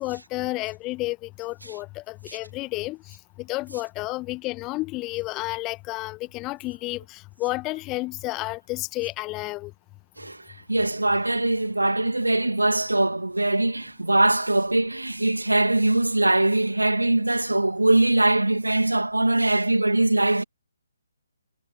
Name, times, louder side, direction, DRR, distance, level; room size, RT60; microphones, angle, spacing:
voice 1, 0.0-9.7, left 21 dB, 20° left, 1.1 m, -31 dB
voice 2, 10.2-20.4, right 2 dB, 80° right, 2.1 m, -22 dB
figure-of-eight pair, 140°, 0 cm